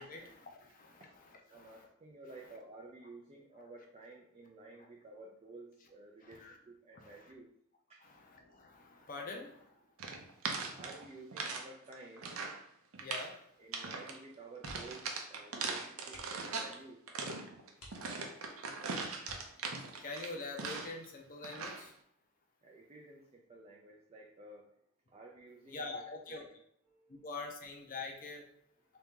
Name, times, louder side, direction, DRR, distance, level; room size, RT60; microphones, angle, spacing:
voice 1, 0.0-1.9 3.6-3.7 4.8-4.9 6.2-6.6 6.9-7.3 8.0-9.8 13.0-13.3 20.0-21.9 25.7-26.5 27.2-28.4, left 3 dB, 40° left, 3 dB, 0.6 m, -45 dB
voice 2, 1.5-6.4 6.7-7.5 10.8-12.3 13.6-17.0 22.6-24.7 25.1-26.6, right 2 dB, 25° right, -1 dB, 0.4 m, -53 dB
sound 1, 10.0-11.6 11.9-12.6 12.9-13.3 13.7-14.2 14.6-16.8 17.1-21.1 21.4-21.9, right 4 dB, 70° right, 0.6 m, -40 dB
sound 2, 14.6-15.1 15.4-15.6 16.0-16.5 17.2-17.3 17.7-18.5 19.2-20.0 21.5-21.9 22.2-22.3, equal, 75° left, 1.1 m, -54 dB
3.5 x 2.8 x 3.6 m, 0.71 s
head